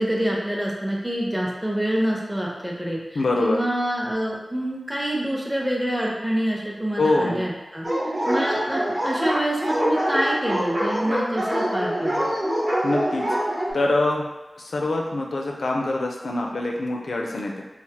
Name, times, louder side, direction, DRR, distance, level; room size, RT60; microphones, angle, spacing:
voice 1, 0.0-12.3, right 1 dB, 5° right, -3 dB, 0.6 m, -26 dB
voice 2, 3.1-3.6 7.0-7.4 12.8-13.3 13.7-14.3 14.6-17.6, left 2 dB, 90° left, 0 dB, 0.4 m, -24 dB
Dog, 7.8-13.7, equal, 40° right, 0.7 m, -24 dB
3.2 x 2.0 x 2.8 m, 1.1 s
wide cardioid pair, 90°, 0 cm